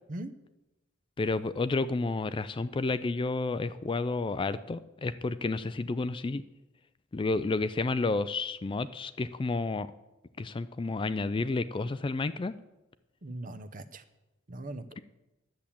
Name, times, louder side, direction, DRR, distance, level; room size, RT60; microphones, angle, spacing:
voice 1, 1.2-6.4 7.1-9.9 10.4-12.5, left 3 dB, 25° left, 14 dB, 0.4 m, -31 dB
voice 2, 13.2-14.0 14.5-15.0, right 1 dB, 45° right, 11 dB, 0.8 m, -40 dB
10.5 x 7.4 x 8.5 m, 0.99 s
head